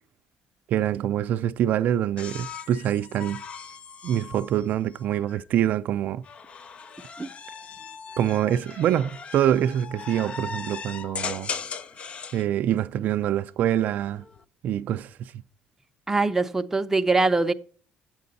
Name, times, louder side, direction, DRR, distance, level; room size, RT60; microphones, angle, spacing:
voice 1, 0.7-3.4 4.0-6.2 8.2-11.5 12.3-14.2 14.6-15.2, right 11 dB, 60° right, 0.4 m, -25 dB
sound 1, 2.2-5.4 6.2-12.4 13.9-14.4, left 5 dB, 40° left, 0.4 m, -38 dB
voice 2, 16.1-17.5, right 3 dB, 10° right, 0.6 m, -22 dB
8.7 x 7.6 x 4.0 m
cardioid pair, 120°, 3 cm